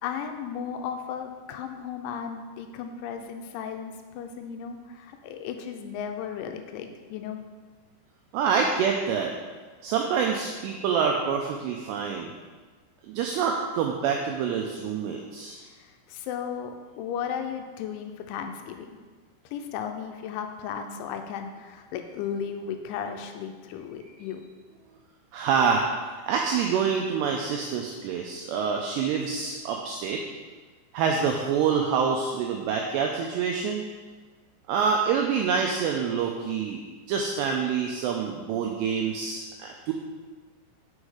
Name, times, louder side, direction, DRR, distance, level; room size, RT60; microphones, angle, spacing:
voice 1, 0.0-7.4 15.6-19.0 19.5-24.4, left 7 dB, 85° left, 5 dB, 2.9 m, -35 dB
voice 2, 8.3-9.3 9.8-12.3 13.1-15.6 25.3-25.9 26.3-30.2 30.9-33.8 34.7-36.8 37.1-39.9, right 6 dB, 90° right, 1 dB, 2.4 m, -26 dB
6.4 x 6.1 x 4.9 m, 1.4 s
omnidirectional pair, 5.5 m